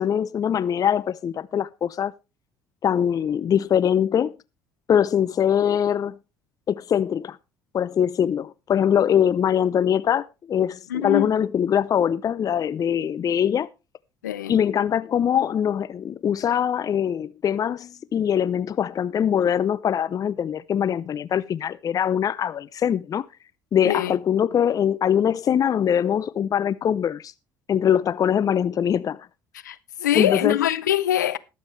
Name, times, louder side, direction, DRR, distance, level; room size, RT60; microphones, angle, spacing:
voice 1, 0.0-2.1 2.8-4.3 4.9-6.2 6.7-7.4 7.7-13.7 14.5-23.3 23.7-27.3 27.7-29.3 30.1-30.6, left 9 dB, 40° left, 0.6 m, -22 dB
voice 2, 10.9-11.3 14.2-14.5 23.8-24.2 29.6-31.4, left 12 dB, 90° left, 0.6 m, -23 dB
21.0 x 7.4 x 3.2 m
hypercardioid pair, 60°, 9 cm